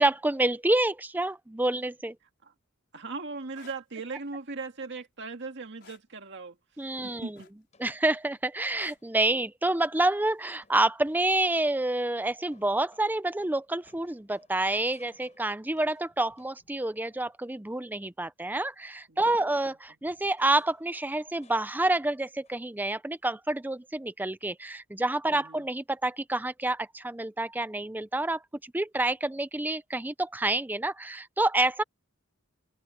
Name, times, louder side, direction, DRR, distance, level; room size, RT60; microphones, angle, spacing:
voice 1, 0.0-2.1 6.8-7.4 7.8-28.4 28.7-31.8, right 2 dB, 10° right, 0.6 m, -28 dB
voice 2, 2.9-6.6 7.0-7.5 19.1-19.7 25.3-25.7, right 3 dB, 60° right, 2.0 m, -39 dB
sound 1, 3.4-3.8 5.8-6.1 7.3-7.8 8.8-9.1 10.5-10.7, left 5 dB, 55° left, 4.6 m, -52 dB
sound 2, 7.7-8.1 8.7-9.1 9.7-10.0 10.6-11.2 11.6-12.0 12.5-17.4 19.5-22.2 22.4-22.8, left 3 dB, 35° left, 5.3 m, -64 dB
head